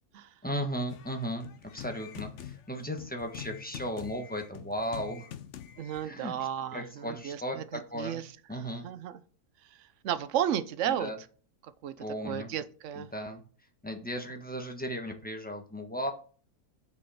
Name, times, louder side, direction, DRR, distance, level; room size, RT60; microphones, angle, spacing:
voice 1, 0.4-5.3 6.0-6.3 6.7-8.2 8.5-8.9 10.9-11.2 12.0-12.5 13.0-13.4 13.8-16.1, equal, 5° left, 1.1 m, -36 dB
sound 1, 0.9-6.1, left 10 dB, 60° left, 0.8 m, -45 dB
voice 2, 5.8-8.2 8.5-9.2 9.6-11.1 11.6-13.1, right 10 dB, 60° right, 0.9 m, -34 dB
9.4 x 5.1 x 4.2 m
omnidirectional pair, 1.7 m